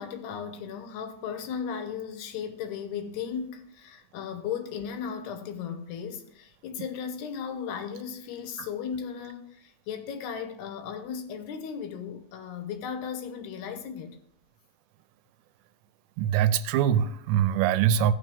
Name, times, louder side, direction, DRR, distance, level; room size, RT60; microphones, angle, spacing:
voice 1, 0.0-14.2, left 7 dB, 75° left, 2.9 m, -36 dB
voice 2, 16.2-18.1, right 9 dB, 90° right, 2.8 m, -23 dB
16.0 x 6.0 x 3.5 m
omnidirectional pair, 4.9 m